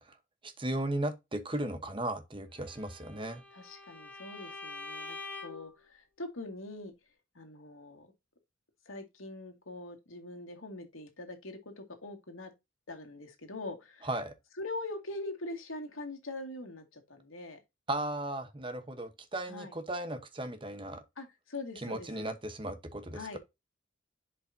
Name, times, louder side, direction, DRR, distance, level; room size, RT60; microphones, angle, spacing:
voice 1, 0.4-3.4 14.0-14.3 17.9-21.0 21.8-23.4, right 1 dB, 25° right, 1.0 m, -36 dB
Bowed string instrument, 2.7-5.7, left 3 dB, 10° left, 1.0 m, -45 dB
voice 2, 3.5-6.9 7.3-8.1 8.9-12.5 12.9-14.1 14.6-17.6 19.5-19.7 21.2-22.3 23.1-23.4, left 2 dB, 90° left, 2.1 m, -43 dB
10.5 x 5.1 x 2.7 m
head